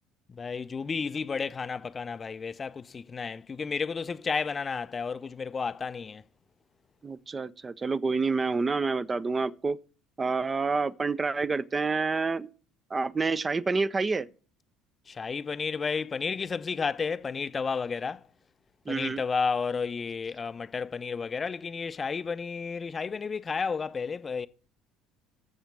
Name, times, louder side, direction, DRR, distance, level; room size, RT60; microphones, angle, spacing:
voice 1, 0.3-6.2 15.1-18.2 18.9-24.5, left 5 dB, 30° left, 0.4 m, -32 dB
voice 2, 7.0-9.8 10.2-12.5 12.9-14.3 18.9-19.2, right 4 dB, 25° right, 0.5 m, -28 dB
8.6 x 7.3 x 7.2 m
figure-of-eight pair, 60°, 0 cm